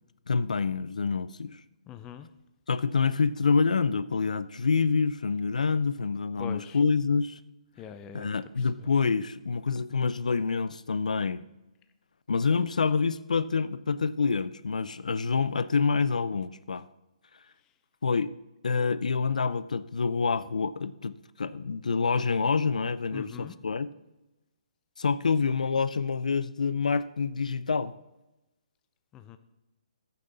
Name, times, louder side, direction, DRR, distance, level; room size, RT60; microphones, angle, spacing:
voice 1, 0.3-1.6 2.7-7.4 8.1-11.4 12.3-16.9 18.0-18.3 18.6-23.9 25.0-27.9, left 5 dB, 85° left, 16 dB, 0.5 m, -27 dB
voice 2, 1.9-2.3 6.4-6.8 7.8-8.3 8.6-8.9 23.1-23.5 29.1-29.4, left 9 dB, 15° left, 11 dB, 0.6 m, -43 dB
14.5 x 6.7 x 4.0 m, 0.98 s
hypercardioid pair, 150°, 4 cm